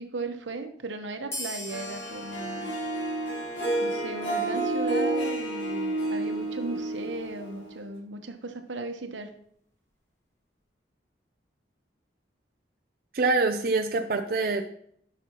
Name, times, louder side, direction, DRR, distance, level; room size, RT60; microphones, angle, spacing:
voice 1, 0.0-2.7 3.2-3.3 3.8-9.3, right 3 dB, 90° right, 6 dB, 1.0 m, -36 dB
sound 1, 1.3-4.3, left 1 dB, 15° left, 1.6 m, -42 dB
Harp, 1.7-8.0, right 2 dB, 75° left, 1.9 m, -30 dB
voice 2, 13.1-14.6, right 3 dB, 50° right, 3 dB, 0.5 m, -25 dB
10.5 x 6.0 x 3.0 m, 0.65 s
head